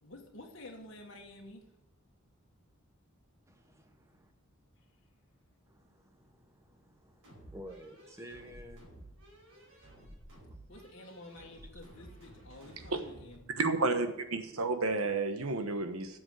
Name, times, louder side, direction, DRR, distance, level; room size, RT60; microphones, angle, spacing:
voice 1, 0.0-1.7 10.7-13.6, left 1 dB, 60° left, -1 dB, 1.7 m, -50 dB
voice 2, 3.5-4.3 5.7-8.9 9.7-9.8, equal, 15° right, 5 dB, 1.0 m, -52 dB
sound 1, 7.2-13.4, right 1 dB, 65° right, 4.7 m, -54 dB
voice 3, 13.6-16.2, right 3 dB, 80° right, 8 dB, 1.1 m, -31 dB
8.1 x 7.0 x 7.8 m, 0.86 s
head